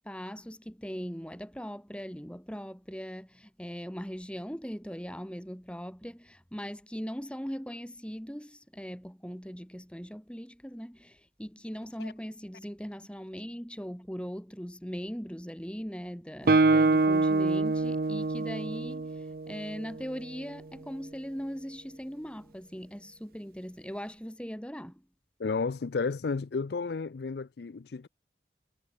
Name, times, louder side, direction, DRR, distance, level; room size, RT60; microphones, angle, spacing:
voice 1, 0.0-25.0, equal, 5° left, 3.3 m, -40 dB
Guitar, 16.5-20.1, right 3 dB, 55° right, 0.6 m, -25 dB
voice 2, 25.4-28.1, left 4 dB, 70° left, 0.5 m, -32 dB
head